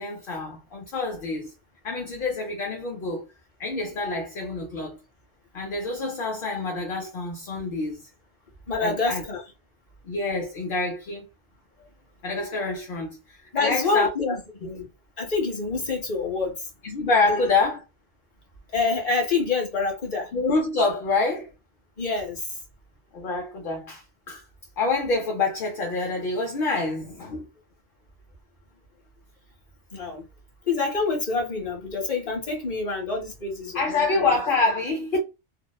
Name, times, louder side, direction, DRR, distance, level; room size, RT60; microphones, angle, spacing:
voice 1, 0.0-1.5 1.8-3.2 3.6-5.0 5.5-8.1 8.8-9.2 10.0-11.3 12.2-13.2 13.5-14.4 16.8-17.8 20.3-21.5 23.1-24.4 24.8-27.5 33.7-35.2, left 3 dB, 60° left, 0.7 m, -26 dB
voice 2, 8.7-9.4 13.5-14.9 15.2-16.7 17.3-17.5 18.7-20.3 22.0-22.5 29.9-30.2 30.7-34.4, left 4 dB, 35° left, 1.0 m, -27 dB
2.8 x 2.0 x 2.2 m
omnidirectional pair, 1.1 m